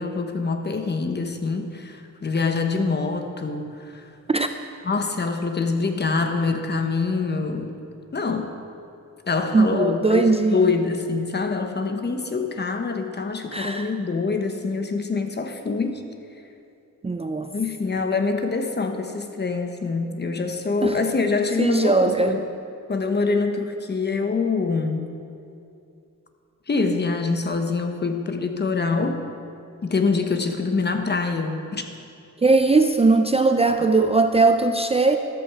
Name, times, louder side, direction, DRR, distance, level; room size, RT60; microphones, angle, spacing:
voice 1, 0.0-4.0 4.8-7.7 8.1-8.6 9.3-16.0 17.5-22.5 22.9-25.1 26.7-29.2 29.8-31.8, left 4 dB, 35° left, 6 dB, 1.1 m, -25 dB
voice 2, 9.5-10.6 13.5-13.9 17.0-17.5 20.8-21.0 21.6-22.3 32.4-35.2, right 3 dB, 20° right, 7 dB, 0.4 m, -19 dB
13.5 x 13.0 x 4.8 m, 2.6 s
wide cardioid pair, 135°, 30 cm